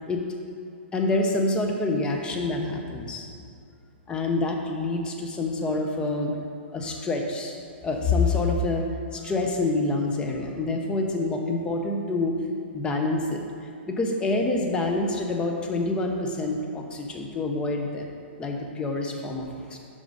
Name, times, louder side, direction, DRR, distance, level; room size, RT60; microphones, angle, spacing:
voice 1, 0.9-3.3 4.1-6.3 6.7-7.6 7.8-8.9 9.1-12.4 12.7-13.4 13.9-18.1 18.4-19.8, left 2 dB, 15° left, 2 dB, 0.6 m, -27 dB
6.7 x 5.2 x 3.9 m, 2.5 s
hypercardioid pair, 145°, 6 cm